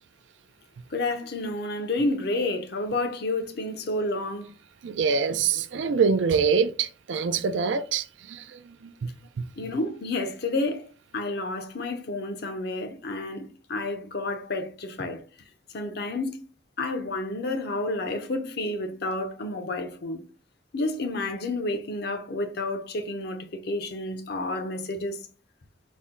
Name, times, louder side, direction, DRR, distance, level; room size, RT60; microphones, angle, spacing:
voice 1, 0.9-4.5 9.6-10.9 11.1-15.2 15.7-16.4 16.8-20.2 20.7-25.2, left 2 dB, 60° left, 0.6 m, -30 dB
voice 2, 4.8-9.1 9.4-9.5, right 5 dB, 80° right, 0.4 m, -25 dB
4.2 x 2.1 x 3.6 m
head